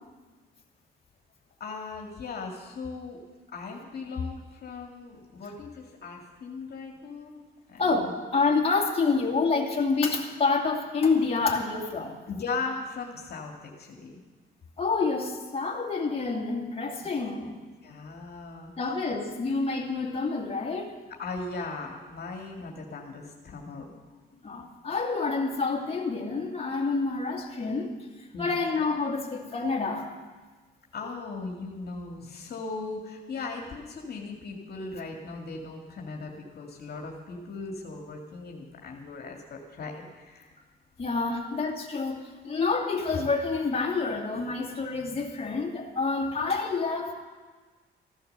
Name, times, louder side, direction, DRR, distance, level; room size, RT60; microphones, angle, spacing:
voice 1, 1.6-3.2 3.5-7.4 7.7-7.8 12.3-14.1 17.8-18.7 21.2-23.9 28.3-28.5 30.9-40.5 41.4-41.5, left 3 dB, 55° left, 1 dB, 2.2 m, -38 dB
voice 2, 7.8-12.2 14.8-17.6 18.8-20.9 24.4-27.9 28.4-30.1 41.0-47.1, left 4 dB, 30° left, -1 dB, 2.5 m, -28 dB
15.0 x 11.5 x 6.8 m, 1.4 s
cardioid pair, 90°, 20 cm